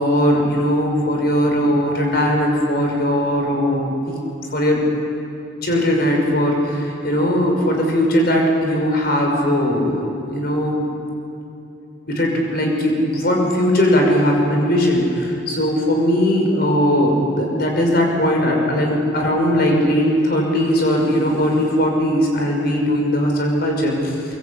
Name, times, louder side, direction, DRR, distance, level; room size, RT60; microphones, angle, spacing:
voice 1, 0.0-4.2 4.5-4.8 5.6-10.0 10.3-10.8 12.1-24.2, equal, 55° left, 1 dB, 5.8 m, -19 dB
24.0 x 23.5 x 8.6 m, 2.7 s
head